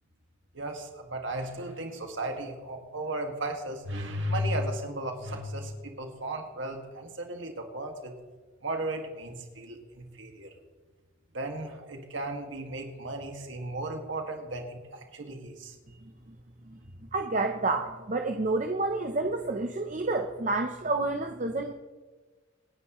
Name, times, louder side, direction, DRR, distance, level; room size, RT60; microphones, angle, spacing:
voice 1, 0.5-8.1 8.6-10.5 11.3-15.8, right 1 dB, 65° right, 3 dB, 1.9 m, -35 dB
voice 2, 17.1-21.7, right 2 dB, 40° right, 4 dB, 0.7 m, -29 dB
26.0 x 10.5 x 3.1 m, 1.3 s
head